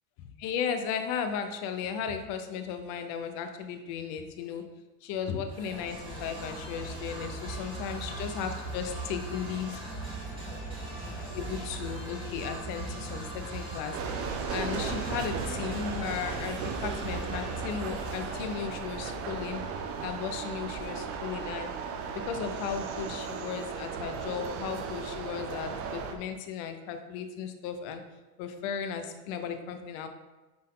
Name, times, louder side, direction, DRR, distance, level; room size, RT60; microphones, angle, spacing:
voice 1, 0.2-4.6 5.0-9.8 11.3-14.0 14.5-19.7 20.0-21.7 22.1-28.0 28.4-30.1, left 7 dB, 45° left, 7 dB, 0.8 m, -35 dB
sound 1, 5.5-20.2, right 2 dB, 10° right, 2.0 m, -39 dB
sound 2, 13.9-26.1, right 6 dB, 30° right, 0.6 m, -36 dB
9.6 x 4.4 x 3.8 m, 1.2 s
supercardioid pair, 160°, 48 cm